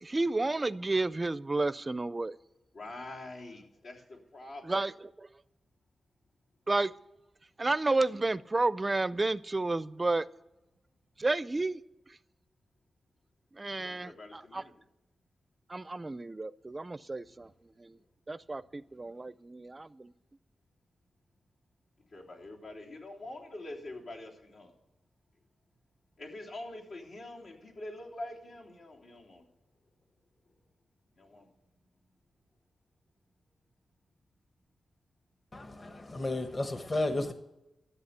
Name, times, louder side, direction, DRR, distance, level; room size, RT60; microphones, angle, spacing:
voice 1, 0.0-2.4 4.7-4.9 5.2-5.3 6.7-6.9 7.6-10.3 11.2-11.8 13.5-14.6 15.7-17.5 17.8-18.0 18.3-20.1, right 2 dB, 25° right, 0.4 m, -31 dB
voice 2, 2.7-4.8 13.8-14.7 17.2-17.5 18.0-18.1 18.9-19.2 22.0-24.8 26.2-29.5 30.4-30.5 31.2-31.5, left 2 dB, 85° left, 3.4 m, -45 dB
voice 3, 35.5-37.3, left 2 dB, 35° left, 1.0 m, -33 dB
13.5 x 8.0 x 8.1 m
wide cardioid pair, 90°, 0 cm